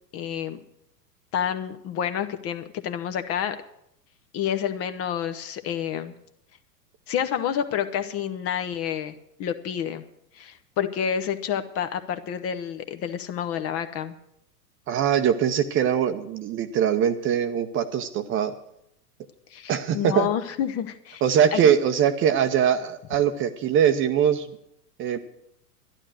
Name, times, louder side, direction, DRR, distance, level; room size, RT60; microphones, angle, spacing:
voice 1, 0.1-0.6 1.3-3.6 4.3-6.1 7.1-9.1 9.4-10.0 10.3-14.1 19.5-21.2 21.5-21.6, left 9 dB, 30° left, 9 dB, 0.8 m, -29 dB
voice 2, 14.9-18.5 19.7-20.3 21.2-24.6 25.0-25.2, right 9 dB, 25° right, 10 dB, 0.7 m, -22 dB
11.5 x 11.5 x 6.3 m, 0.77 s
hypercardioid pair, 105°, 48 cm